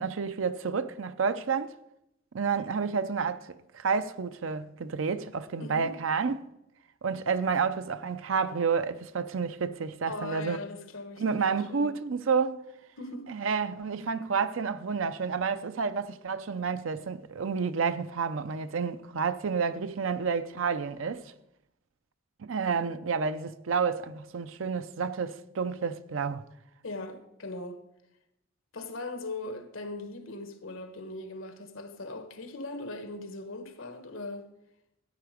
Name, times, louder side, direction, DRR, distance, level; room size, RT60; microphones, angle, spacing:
voice 1, 0.0-1.7 2.3-6.5 7.0-10.6 11.2-12.6 13.3-21.3 22.4-26.5, right 5 dB, 80° right, 0.6 m, -30 dB
voice 2, 5.6-6.0 10.1-12.0 13.0-13.3 26.8-27.8 28.7-34.5, left 2 dB, 85° left, 1.4 m, -39 dB
14.0 x 9.2 x 5.0 m
head